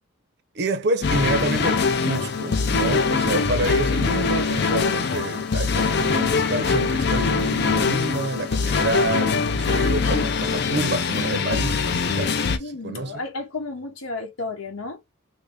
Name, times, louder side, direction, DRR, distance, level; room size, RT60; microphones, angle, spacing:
voice 1, 0.5-13.1, right 2 dB, 50° right, 0.6 m, -28 dB
sound 1, 1.0-12.6, left 4 dB, 50° left, 0.4 m, -23 dB
voice 2, 12.4-15.0, left 3 dB, 90° left, 0.9 m, -33 dB
3.1 x 2.7 x 3.3 m
head